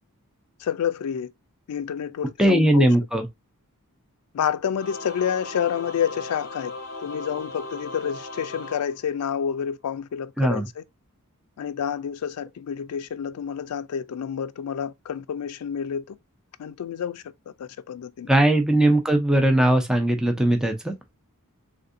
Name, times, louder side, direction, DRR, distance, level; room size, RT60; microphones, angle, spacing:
voice 1, 0.6-1.3 1.7-2.9 4.3-10.8 11.6-16.2 16.6-17.2 17.6-18.3, left 8 dB, 75° left, 0.4 m, -29 dB
voice 2, 2.4-3.3 10.4-10.7 18.3-20.9, right 1 dB, 5° right, 0.5 m, -19 dB
Singing / Musical instrument, 4.7-9.6, left 2 dB, 45° left, 0.8 m, -37 dB
3.5 x 2.5 x 2.5 m
head